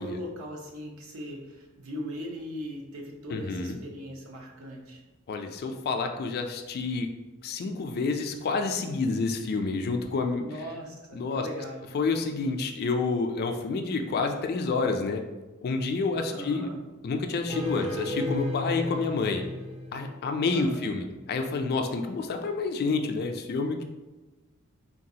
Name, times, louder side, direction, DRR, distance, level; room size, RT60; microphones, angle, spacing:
voice 1, 0.0-5.0 10.4-11.9 16.3-16.8 20.5-20.9, equal, 70° right, 0 dB, 0.7 m, -39 dB
voice 2, 3.3-3.8 5.3-7.1 7.4-10.5 11.1-11.5 11.9-15.2 15.6-16.7 17.0-19.4 19.9-23.8, left 4 dB, 45° left, 5 dB, 0.3 m, -29 dB
sound 1, 17.5-20.5, left 1 dB, 30° right, 0.5 m, -34 dB
3.8 x 2.4 x 2.7 m, 1.1 s
head